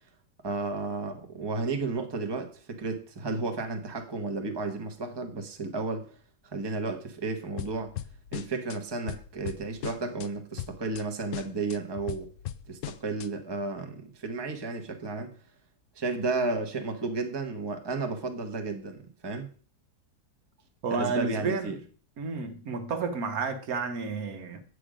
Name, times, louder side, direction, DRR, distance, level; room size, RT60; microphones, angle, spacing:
voice 1, 0.4-6.1 6.5-7.9 8.3-12.3 12.7-15.3 15.9-19.5 20.9-21.8, right 3 dB, 20° right, 1.0 m, -33 dB
sound 1, 7.6-8.8 9.1-10.3 10.6-11.0 11.3-13.3, left 12 dB, 70° left, 0.8 m, -38 dB
voice 2, 20.8-21.8 22.2-24.6, right 4 dB, 70° right, 1.5 m, -31 dB
8.8 x 6.3 x 5.0 m
omnidirectional pair, 1.7 m